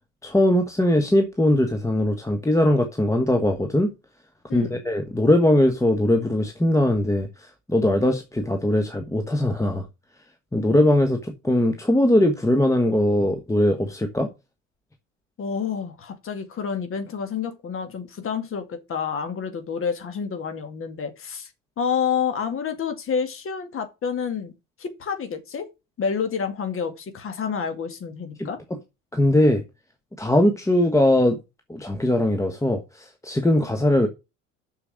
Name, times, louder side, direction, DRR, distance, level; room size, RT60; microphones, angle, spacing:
voice 1, 0.2-3.9 4.5-9.8 10.5-14.3 28.4-28.8 29.1-29.6 30.2-31.4 31.7-34.1, left 1 dB, 10° left, 1.4 m, -20 dB
voice 2, 4.5-4.8 15.4-21.5 21.8-24.5 24.8-25.7 26.0-28.6, left 6 dB, 35° left, 2.2 m, -29 dB
6.7 x 6.7 x 7.2 m
figure-of-eight pair, 65°, 38 cm